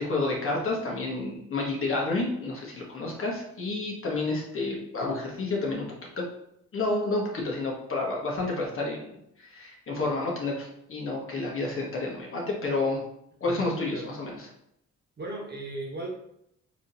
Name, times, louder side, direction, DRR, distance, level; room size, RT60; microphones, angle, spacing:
voice 1, 0.0-5.8 6.2-6.3 6.7-13.0 13.4-14.5, left 2 dB, 45° left, -2 dB, 1.3 m, -30 dB
voice 2, 15.2-16.2, right 2 dB, 35° right, -2 dB, 1.3 m, -36 dB
4.9 x 2.9 x 2.6 m, 0.76 s
cardioid pair, 90°, 30 cm